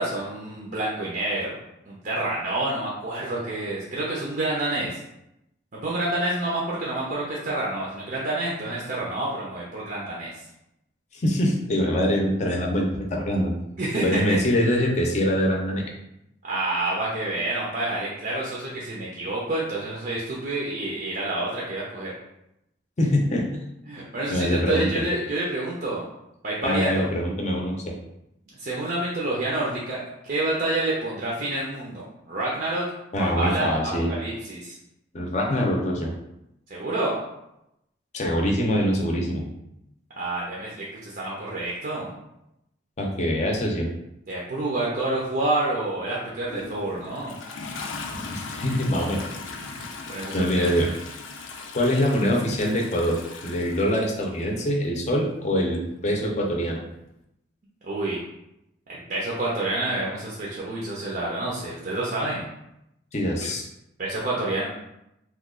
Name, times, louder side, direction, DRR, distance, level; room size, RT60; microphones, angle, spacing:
voice 1, 0.0-1.6 1.9-5.0 5.7-10.3 13.8-14.4 16.4-22.1 23.9-26.0 26.4-27.1 28.5-32.8 33.2-34.8 36.7-37.2 40.2-42.1 44.3-47.3 49.6-50.9 57.8-58.2 58.9-62.4 63.4-63.5 64.0-64.7, right 2 dB, 45° right, -5 dB, 0.5 m, -28 dB
voice 2, 11.1-13.5 14.0-15.9 23.0-23.4 24.3-25.0 26.6-27.9 33.1-34.1 35.1-36.1 38.1-39.5 43.0-43.9 48.1-49.2 50.3-50.9 51.7-53.2 53.4-56.8 63.1-63.6, equal, 35° left, -1 dB, 0.6 m, -24 dB
Toilet flush, 46.3-54.7 55.7-55.8, left 4 dB, 85° left, 0.5 m, -38 dB
3.0 x 2.3 x 3.6 m, 0.85 s
head